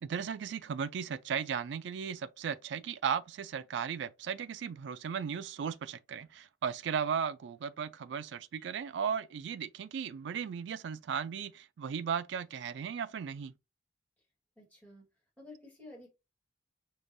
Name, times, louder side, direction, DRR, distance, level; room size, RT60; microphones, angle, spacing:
voice 1, 0.0-13.5, right 7 dB, 75° right, 0.3 m, -36 dB
voice 2, 14.6-15.0 15.4-16.1, left 2 dB, 10° left, 1.5 m, -51 dB
4.8 x 2.5 x 2.6 m
head